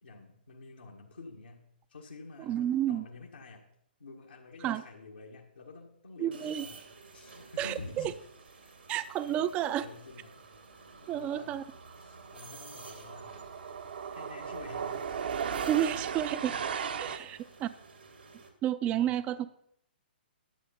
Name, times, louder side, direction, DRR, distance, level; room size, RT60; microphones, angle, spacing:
voice 1, 0.0-1.6 1.9-3.6 4.0-6.8 7.1-8.2 8.6-8.9 9.2-10.4 11.0-11.6 11.9-13.5 14.0-15.2 15.9-16.0 17.0-17.6 18.8-19.3, left 3 dB, 85° left, -2 dB, 1.7 m, -49 dB
voice 2, 2.5-3.0 4.6-4.8 6.2-6.6 7.6-8.1 8.9-9.8 11.1-11.6 15.7-16.6 17.0-17.7 18.6-19.4, right 11 dB, 25° right, 13 dB, 0.4 m, -30 dB
sound 1, 6.3-18.5, right 4 dB, 85° right, 2.3 m, -53 dB
sound 2, 10.4-10.6 10.9-17.2, right 7 dB, 65° right, 0.9 m, -37 dB
11.5 x 7.8 x 5.3 m, 0.73 s
hypercardioid pair, 130°, 6 cm